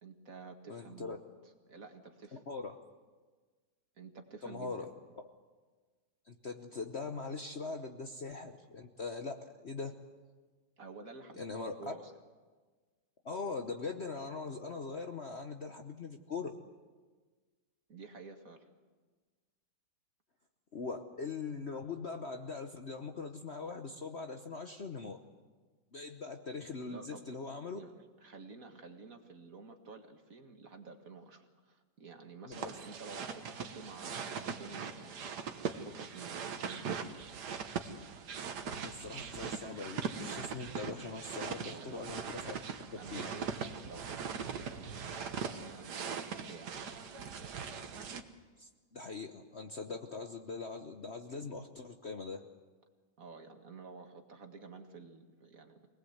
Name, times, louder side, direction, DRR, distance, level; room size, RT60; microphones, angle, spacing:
voice 1, 0.0-1.2 1.7-2.4 4.0-4.8 10.8-12.1 17.9-18.7 26.9-27.2 27.8-35.2 35.7-36.9 41.6-42.2 43.0-46.7 53.2-55.9, right 4 dB, 50° right, 4 dB, 2.1 m, -51 dB
voice 2, 0.7-1.2 2.5-2.8 4.4-4.9 6.3-9.9 11.3-11.8 13.2-16.6 20.7-25.2 25.9-27.8 32.4-32.7 38.7-42.5 43.1-43.3 48.6-52.5, left 4 dB, 45° left, 5 dB, 1.0 m, -41 dB
sound 1, 32.5-48.2, right 6 dB, 65° right, 1.8 m, -40 dB
24.5 x 19.0 x 8.0 m, 1.4 s
omnidirectional pair, 2.0 m